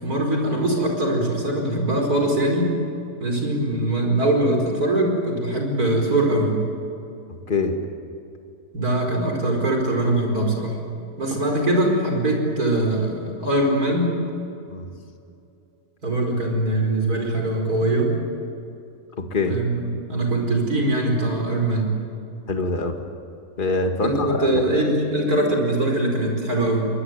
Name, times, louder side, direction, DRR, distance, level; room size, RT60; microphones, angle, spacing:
voice 1, 0.0-2.7 3.2-6.6 8.7-10.8 11.2-14.1 16.0-18.1 19.5-21.9 24.0-26.8, right 1 dB, 80° right, 1 dB, 5.4 m, -22 dB
voice 2, 7.5-7.8 14.7-14.9 19.2-19.6 22.5-23.0 23.6-24.5, left 3 dB, 35° left, 4 dB, 2.1 m, -24 dB
24.0 x 21.5 x 9.3 m, 2.7 s
omnidirectional pair, 1.6 m